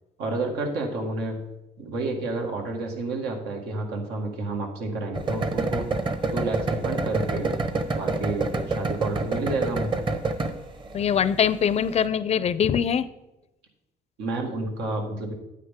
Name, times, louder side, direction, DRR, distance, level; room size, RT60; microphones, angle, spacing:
voice 1, 0.2-1.4 1.8-5.9 6.3-7.5 8.0-9.9 14.2-15.3, right 2 dB, 85° right, 2 dB, 1.9 m, -30 dB
sound 1, 5.1-12.0, right 3 dB, 30° right, 1.0 m, -27 dB
voice 2, 10.9-13.1, left 8 dB, 40° left, 15 dB, 0.5 m, -23 dB
9.4 x 8.7 x 3.6 m, 0.94 s
cardioid pair, 110°, 17 cm